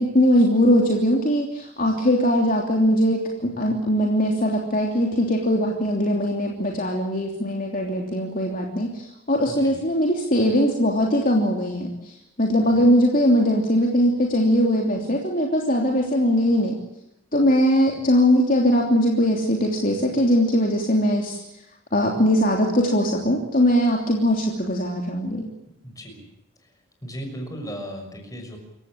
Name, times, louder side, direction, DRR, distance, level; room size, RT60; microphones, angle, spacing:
voice 1, 0.0-16.7 17.3-21.4 21.9-25.5, equal, 40° left, 0 dB, 3.1 m, -21 dB
voice 2, 9.5-9.8 12.6-12.8 25.8-26.3 27.0-28.6, equal, 15° left, 4 dB, 6.3 m, -36 dB
28.0 x 15.5 x 8.8 m, 0.84 s
head